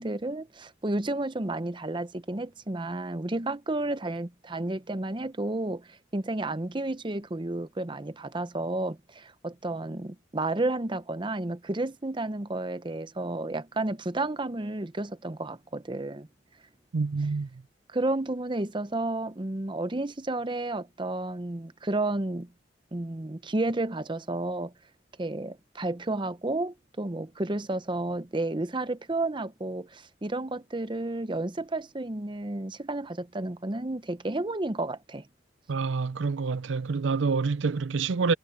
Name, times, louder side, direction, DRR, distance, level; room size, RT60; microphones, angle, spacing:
voice 1, 0.0-16.3 17.9-22.5 22.9-24.7 25.2-35.3, right 2 dB, 25° right, 0.7 m, -31 dB
voice 2, 16.9-17.5 35.7-38.3, right 4 dB, 75° right, 0.5 m, -27 dB
head